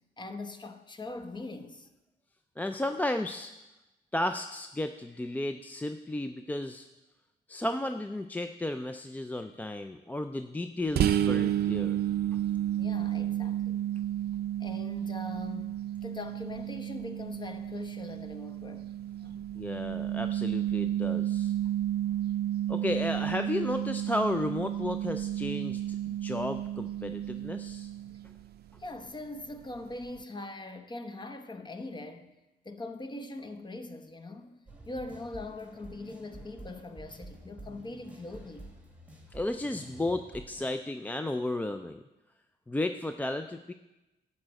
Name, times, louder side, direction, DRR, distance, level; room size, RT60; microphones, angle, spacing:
voice 1, 0.2-1.9 12.8-13.8 14.6-18.9 19.2-19.4 28.0-28.2 28.8-32.4 32.6-34.6 34.9-38.7, left 2 dB, 25° left, 0.9 m, -42 dB
voice 2, 2.6-3.5 4.1-6.9 7.5-12.0 19.6-21.5 22.7-27.9 39.3-42.0 42.7-43.7, left 1 dB, 10° left, 0.3 m, -33 dB
sound 1, 11.0-28.5, right 11 dB, 60° right, 0.5 m, -31 dB
sound 2, 34.7-40.7, right 1 dB, 5° right, 1.9 m, -49 dB
11.0 x 4.3 x 7.7 m
cardioid pair, 100°, 19 cm